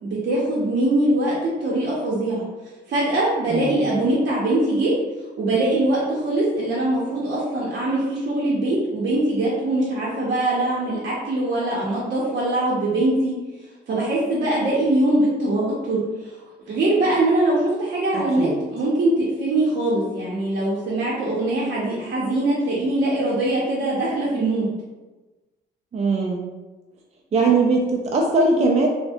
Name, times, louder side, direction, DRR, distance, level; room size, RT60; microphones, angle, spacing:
voice 1, 0.0-2.4 2.9-4.9 5.4-13.3 13.9-16.0 16.7-24.7, right 1 dB, 55° right, -7 dB, 0.7 m, -22 dB
voice 2, 3.5-3.8 18.1-18.5 25.9-26.4 27.3-28.9, right 3 dB, 35° right, 0 dB, 0.4 m, -20 dB
3.1 x 2.1 x 2.7 m, 1.2 s
cardioid pair, 90°, 20 cm